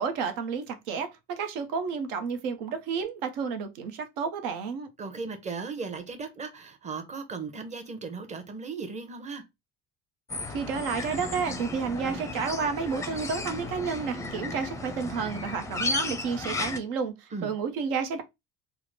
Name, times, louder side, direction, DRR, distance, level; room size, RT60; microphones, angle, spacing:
voice 1, 0.0-4.9 10.5-18.2, right 5 dB, 80° right, 0.8 m, -31 dB
voice 2, 5.0-9.4 17.3-17.5, right 4 dB, 20° right, 0.8 m, -37 dB
Lorikeets near the back door, 10.3-16.8, left 2 dB, 10° left, 0.5 m, -34 dB
3.6 x 2.1 x 3.2 m
supercardioid pair, 105°, 31 cm